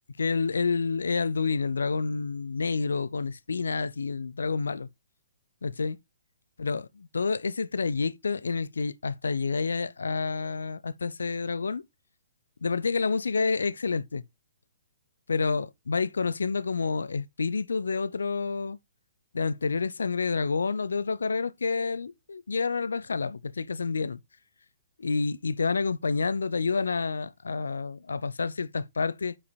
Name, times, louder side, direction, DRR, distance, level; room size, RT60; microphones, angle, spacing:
voice 1, 0.2-4.9 5.6-6.0 6.6-11.8 12.6-14.2 15.3-18.8 19.3-24.2 25.0-29.4, left 4 dB, 70° left, 0.5 m, -29 dB
5.6 x 4.9 x 4.2 m
figure-of-eight pair, 125°, 0 cm